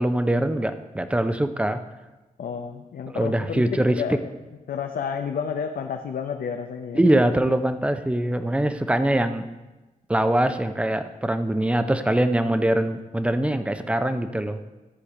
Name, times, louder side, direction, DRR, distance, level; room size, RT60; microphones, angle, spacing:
voice 1, 0.0-1.8 3.1-4.2 6.9-9.5 10.1-14.6, right 1 dB, 10° right, 9 dB, 0.5 m, -23 dB
voice 2, 2.4-4.2 4.7-7.0, left 6 dB, 90° left, 4 dB, 0.6 m, -30 dB
13.0 x 5.0 x 4.9 m, 1.1 s
wide cardioid pair, 115°, 15 cm